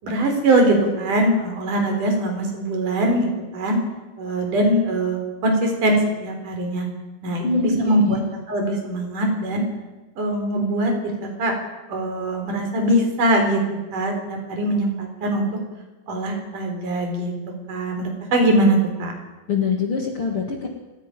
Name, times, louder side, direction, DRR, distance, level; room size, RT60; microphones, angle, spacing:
voice 1, 0.0-3.8 4.2-6.9 7.2-8.2 8.5-9.6 10.2-11.6 11.9-13.6 13.9-15.5 16.1-17.3 17.7-19.1, right 1 dB, 45° right, 3 dB, 5.3 m, -22 dB
voice 2, 7.4-8.1 19.5-20.7, left 4 dB, 50° left, 1 dB, 1.7 m, -24 dB
29.0 x 10.5 x 9.2 m, 1.1 s
omnidirectional pair, 5.4 m